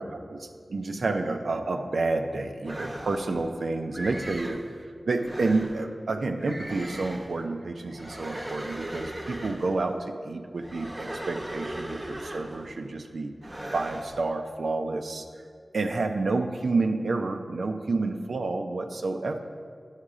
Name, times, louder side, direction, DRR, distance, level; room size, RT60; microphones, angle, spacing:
voice 1, 0.0-4.6 5.1-15.3 15.7-19.4, right 3 dB, 75° right, 5 dB, 0.6 m, -29 dB
sound 1, 2.6-3.4 3.9-4.7 5.2-5.8 6.4-7.4 7.9-9.8 10.6-12.8 13.4-14.2, right 1 dB, 25° right, 0.9 m, -38 dB
9.9 x 6.5 x 4.9 m, 2.1 s
wide cardioid pair, 75°, 0 cm